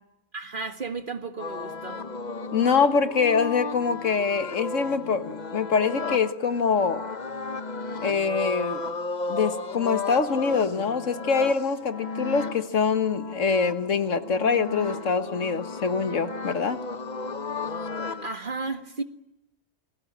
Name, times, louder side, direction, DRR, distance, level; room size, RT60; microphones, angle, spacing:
voice 1, 0.3-2.1 18.2-19.0, right 3 dB, 40° right, 1.9 m, -33 dB
sound 1, 1.4-18.3, left 3 dB, 35° left, 1.2 m, -34 dB
voice 2, 2.5-7.0 8.0-8.8 9.3-16.8, left 5 dB, 75° left, 1.9 m, -24 dB
30.0 x 21.5 x 8.8 m
omnidirectional pair, 1.3 m